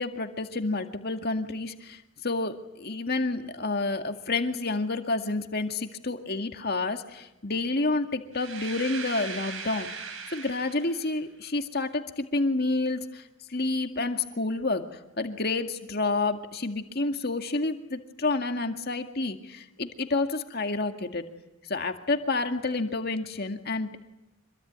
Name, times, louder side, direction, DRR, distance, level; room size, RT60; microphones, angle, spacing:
voice 1, 0.0-9.9 10.3-13.2 13.5-21.2 21.7-24.0, left 3 dB, 45° left, 6 dB, 2.1 m, -29 dB
sound 1, 8.3-11.1, right 5 dB, 70° right, 4.6 m, -38 dB
26.0 x 22.5 x 9.6 m, 0.93 s
head